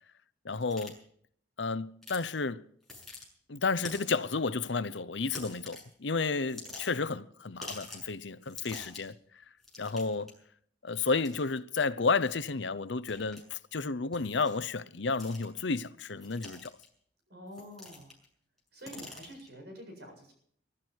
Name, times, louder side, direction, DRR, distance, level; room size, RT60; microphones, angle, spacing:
voice 1, 0.4-1.0 1.6-2.6 3.5-9.2 9.8-10.3 10.8-16.7, left 4 dB, 75° left, 0.8 m, -32 dB
sound 1, 0.6-0.9 2.0-2.2 2.8-3.2 3.8-4.2 5.3-5.9 6.4-7.1 7.6-8.1 8.4-9.1 9.6-10.3 11.2-11.4 12.3-12.5 13.1-13.4 14.1-14.6 15.1-15.6 16.2-16.9 17.5-18.2 18.6-19.5, left 2 dB, ahead, 7.0 m, -46 dB
voice 2, 17.3-18.1 18.7-20.3, equal, 65° right, 7.7 m, -47 dB
23.0 x 12.5 x 4.7 m
head